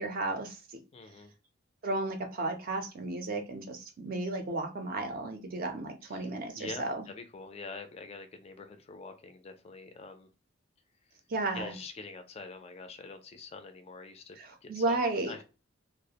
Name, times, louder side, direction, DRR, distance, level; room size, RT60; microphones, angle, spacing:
voice 1, 0.0-0.8 1.8-7.0 11.3-11.7 14.4-15.3, right 2 dB, 45° right, 0.4 m, -33 dB
voice 2, 0.9-1.3 6.1-6.3 6.6-10.3 11.5-14.4 14.6-15.4, left 3 dB, 30° left, 0.3 m, -45 dB
2.4 x 2.0 x 2.7 m
head